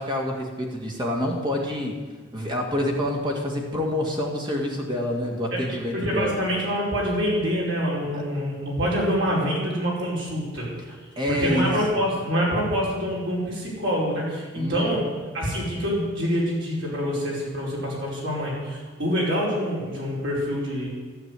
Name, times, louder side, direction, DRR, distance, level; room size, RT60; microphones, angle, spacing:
voice 1, 0.0-2.0 2.3-6.3 11.2-11.7 14.5-14.9, left 1 dB, 20° right, 0 dB, 2.0 m, -27 dB
voice 2, 5.9-10.7 11.3-15.0 15.3-20.9, equal, 60° right, -4 dB, 5.1 m, -26 dB
13.0 x 11.5 x 8.3 m, 1.4 s
head